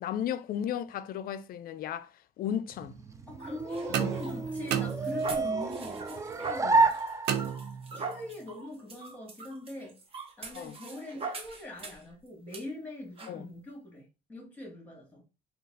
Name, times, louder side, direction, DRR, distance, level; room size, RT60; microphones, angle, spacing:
voice 1, 0.0-2.1 2.4-2.9 3.9-4.1 6.6-6.8 10.5-10.8 13.3-13.4, left 9 dB, 60° left, 0.4 m, -35 dB
sound 1, 2.7-7.7, right 3 dB, 20° right, 0.4 m, -30 dB
voice 2, 3.3-6.8 7.4-7.6 7.9-10.0 10.4-15.2, left 1 dB, 10° left, 2.0 m, -43 dB
sound 2, 3.4-12.1 12.5-12.6 13.2-13.4, right 4 dB, 35° right, 0.9 m, -42 dB
sound 3, 3.9-5.6 7.3-8.2, right 9 dB, 80° right, 0.6 m, -33 dB
3.9 x 2.4 x 3.8 m
cardioid pair, 115°, 17 cm